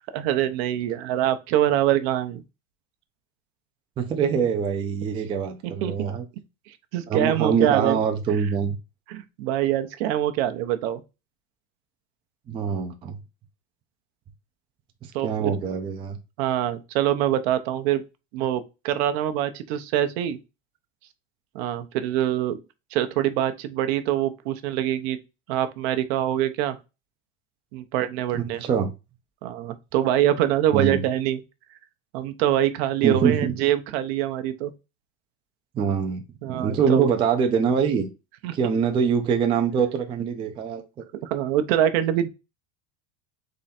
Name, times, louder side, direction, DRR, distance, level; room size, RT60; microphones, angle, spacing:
voice 1, 0.1-2.4 5.6-6.1 6.9-8.0 9.1-11.0 15.1-15.6 16.4-18.0 18.3-20.4 21.5-22.6 22.9-25.2 25.5-26.8 27.7-28.6 29.4-31.4 32.1-34.7 36.4-37.1 38.4-38.6 41.2-42.3, right 12 dB, 65° right, 0.7 m, -24 dB
voice 2, 4.0-6.2 7.1-8.8 12.5-13.2 15.0-16.2 28.3-28.9 30.7-31.0 33.0-33.5 35.7-38.1 38.5-40.8, right 6 dB, 15° right, 0.3 m, -24 dB
3.8 x 3.2 x 4.2 m
cardioid pair, 160°, 34 cm